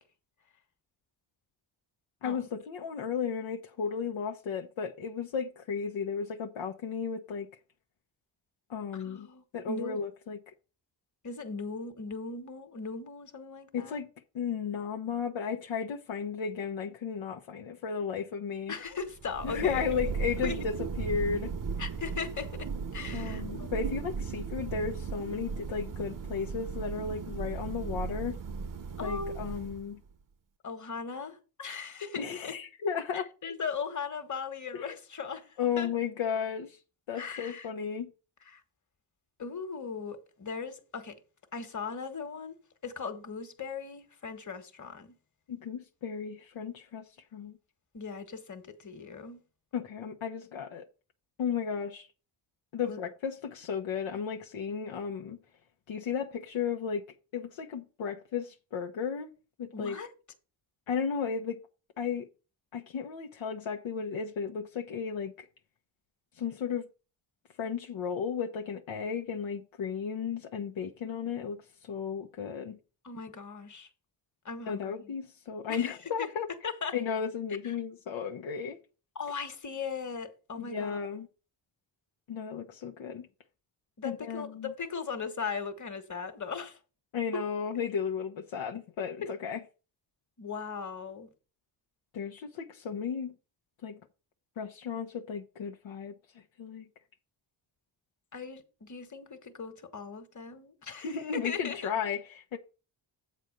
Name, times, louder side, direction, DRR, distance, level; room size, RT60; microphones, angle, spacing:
voice 1, 2.2-7.5 8.7-9.3 9.5-10.4 13.7-14.1 14.3-18.7 19.4-21.5 23.1-28.4 29.0-30.0 32.2-33.3 34.7-34.9 35.6-36.8 37.1-38.1 45.5-47.5 49.7-50.8 51.4-52.1 52.7-55.4 55.9-57.0 57.3-59.3 59.6-60.0 60.9-61.6 62.0-62.3 62.7-65.5 66.4-66.9 67.6-72.8 74.7-76.5 76.9-78.8 80.6-81.3 82.3-83.3 84.0-84.7 87.1-89.6 92.1-93.3 93.8-94.0 94.6-96.8 101.0-102.6, left 6 dB, 75° left, 1.0 m, -34 dB
voice 2, 8.9-10.0 11.2-14.0 18.7-20.0 20.4-20.6 21.8-23.8 29.0-29.4 30.6-32.6 33.1-35.9 37.1-37.7 38.5-38.6 39.4-41.2 41.5-42.6 42.8-45.1 47.9-49.4 52.8-53.0 59.7-60.1 73.0-73.9 74.4-75.1 75.7-76.3 76.6-76.9 77.6-77.7 79.1-81.0 84.0-86.8 89.2-89.3 90.4-91.3 98.3-101.9, left 5 dB, 40° left, 1.6 m, -38 dB
Thunder, 19.0-30.1, right 5 dB, 45° right, 0.9 m, -36 dB
7.7 x 4.4 x 6.5 m
cardioid pair, 70°, 46 cm